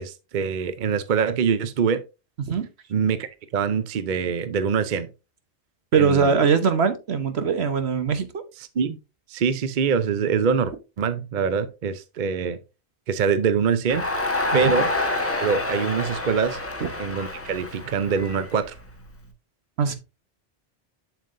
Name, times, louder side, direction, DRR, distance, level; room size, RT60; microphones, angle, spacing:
voice 1, 0.0-2.0 2.9-3.3 3.5-5.1 6.0-6.4 8.8-9.0 9.3-12.6 13.1-14.0 14.5-14.9 15.2-16.6 17.0-18.7, right 6 dB, 50° right, 0.7 m, -24 dB
voice 2, 2.4-2.7 5.9-8.4 14.5-14.7 19.8-19.9, right 6 dB, 70° right, 1.3 m, -21 dB
Crowd, 13.9-19.1, left 2 dB, 15° left, 1.2 m, -28 dB
7.4 x 7.0 x 2.6 m
omnidirectional pair, 1.1 m